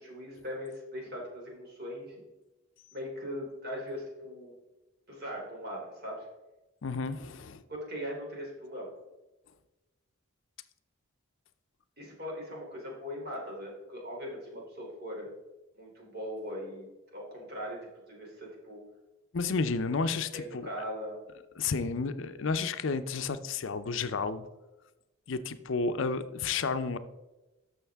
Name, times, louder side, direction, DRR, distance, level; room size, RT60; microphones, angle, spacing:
voice 1, 0.0-2.2 2.9-4.5 5.1-6.3 7.7-8.9 12.0-15.3 15.7-17.8 18.1-18.8 20.3-21.2 21.6-21.7, equal, 45° right, -2 dB, 3.1 m, -40 dB
voice 2, 6.8-7.6 19.3-20.7 21.6-24.5 25.3-27.0, left 4 dB, 60° left, 11 dB, 0.5 m, -31 dB
12.5 x 6.4 x 3.5 m, 1.1 s
head